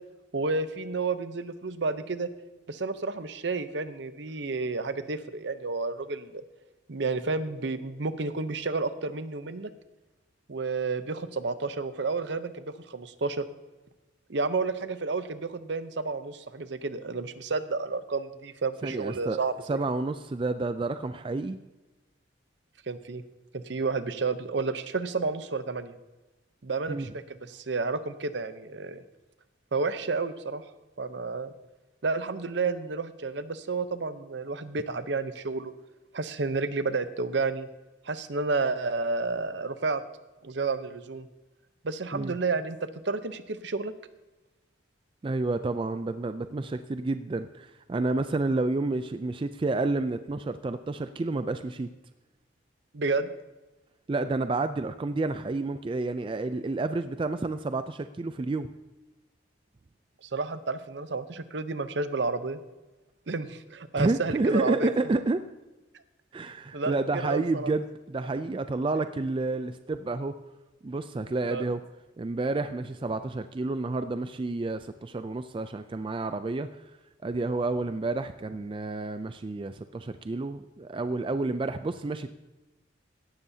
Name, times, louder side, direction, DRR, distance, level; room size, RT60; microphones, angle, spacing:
voice 1, 0.3-2.3 2.7-6.4 6.9-9.7 10.5-13.4 14.3-19.5 22.9-23.2 23.5-25.9 26.6-29.0 29.7-30.6 31.0-31.5 32.0-35.7 36.1-37.7 38.0-40.0 40.4-41.3 41.8-42.8 43.0-43.9 52.9-53.3 60.2-62.6 63.3-64.9 66.7-67.7 71.5-71.7, right 3 dB, 65° right, 12 dB, 0.7 m, -31 dB
voice 2, 18.8-19.4 19.7-21.6 26.9-27.1 42.1-42.3 45.2-51.9 54.1-58.7 64.0-65.4 66.3-70.3 70.8-71.8 72.2-76.7 77.2-82.3, right 3 dB, 25° right, 10 dB, 0.3 m, -30 dB
17.0 x 12.5 x 2.8 m, 1.1 s
head